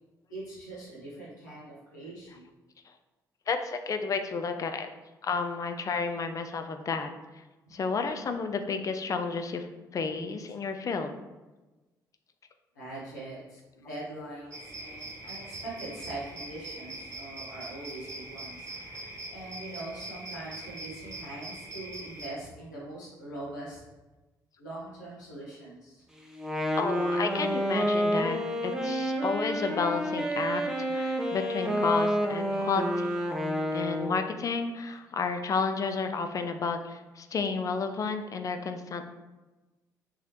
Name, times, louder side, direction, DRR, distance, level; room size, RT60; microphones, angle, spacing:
voice 1, 0.3-2.5 7.7-7.8 12.7-18.7 19.3-23.8 24.6-26.0, right 2 dB, 85° left, -7 dB, 0.9 m, -42 dB
voice 2, 3.5-4.9 5.2-7.1 7.7-9.7 9.9-11.1 18.8-19.1 26.8-30.6 30.9-33.1 33.7-39.1, left 5 dB, 35° left, 7 dB, 0.4 m, -31 dB
sound 1, 14.5-22.3, right 2 dB, 30° right, 1.2 m, -42 dB
Wind instrument woodwind instrument, 26.3-34.3, equal, 5° right, 0.7 m, -29 dB
3.8 x 3.0 x 2.9 m, 1.2 s
figure-of-eight pair, 45°, 9 cm